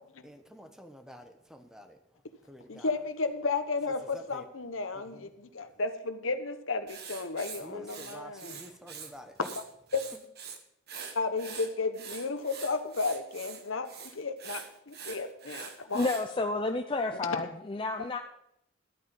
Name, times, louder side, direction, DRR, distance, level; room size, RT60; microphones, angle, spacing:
voice 1, 0.2-3.0 4.1-4.4 4.9-5.3 7.6-9.4 10.1-10.2, left 1 dB, 5° right, 6 dB, 1.1 m, -49 dB
voice 2, 2.7-8.6 9.9-10.0 11.1-16.1, left 3 dB, 80° left, 9 dB, 1.1 m, -33 dB
Writing, 6.9-9.1 9.4-10.6 10.9-16.3, right 6 dB, 55° right, 1.4 m, -44 dB
voice 3, 15.8-18.2, left 3 dB, 25° left, 4 dB, 0.6 m, -31 dB
13.0 x 9.0 x 5.4 m, 0.76 s
head